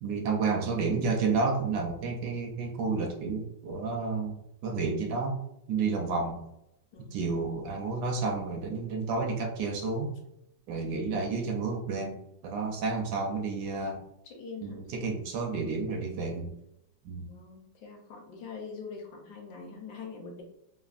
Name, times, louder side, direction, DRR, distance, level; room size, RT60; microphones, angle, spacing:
voice 1, 0.0-4.3 4.6-5.4 5.7-6.4 7.1-10.1 10.7-14.0 14.6-16.5 17.0-17.3, right 4 dB, 75° right, 2 dB, 1.1 m, -31 dB
voice 2, 14.2-14.8 17.2-20.4, left 5 dB, 70° left, 1 dB, 1.1 m, -44 dB
3.3 x 2.1 x 2.4 m, 0.81 s
omnidirectional pair, 2.0 m